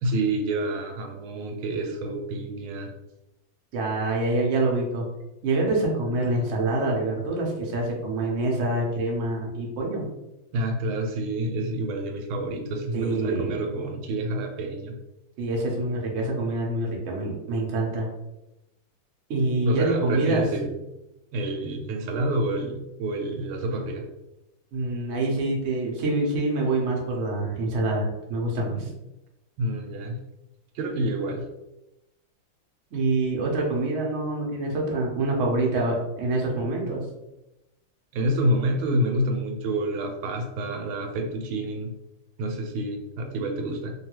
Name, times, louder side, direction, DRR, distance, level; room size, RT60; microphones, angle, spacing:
voice 1, 0.0-2.9 10.5-15.0 19.6-20.7 21.3-24.1 28.7-28.9 29.6-30.2 30.7-31.5 38.1-41.9 42.4-43.9, right 1 dB, 85° right, 3 dB, 1.4 m, -28 dB
voice 2, 3.7-5.1 5.4-10.1 12.9-13.6 15.4-18.1 19.3-20.5 24.7-28.8 32.9-37.1, right 2 dB, 65° right, -1 dB, 0.7 m, -26 dB
3.2 x 2.3 x 2.9 m, 0.94 s
omnidirectional pair, 2.2 m